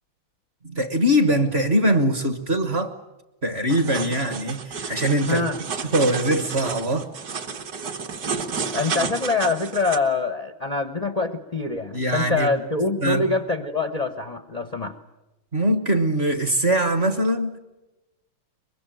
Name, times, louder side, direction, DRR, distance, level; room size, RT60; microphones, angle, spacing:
voice 1, 0.6-2.9 3.4-5.5 5.8-7.1 11.9-12.5 13.0-13.2 15.5-17.6, equal, 35° right, 10 dB, 1.2 m, -22 dB
sound 1, 3.7-10.0, right 5 dB, 50° right, 1.7 m, -31 dB
voice 2, 5.3-5.6 8.7-15.0, left 3 dB, 40° left, 8 dB, 0.5 m, -25 dB
24.0 x 22.0 x 9.1 m, 1.0 s
omnidirectional pair, 2.3 m